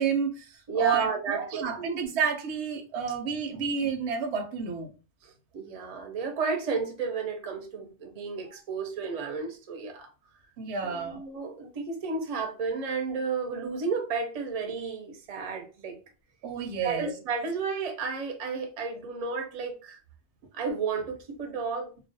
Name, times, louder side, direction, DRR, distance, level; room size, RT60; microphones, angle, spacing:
voice 1, 0.0-0.5 0.8-4.9 10.6-11.2 16.4-17.1, right 6 dB, 80° right, 0.8 m, -30 dB
voice 2, 0.7-2.0 5.2-10.1 10.8-16.0 16.8-20.0 20.5-21.9, right 4 dB, 45° right, 0.5 m, -32 dB
2.3 x 2.0 x 2.6 m
omnidirectional pair, 1.1 m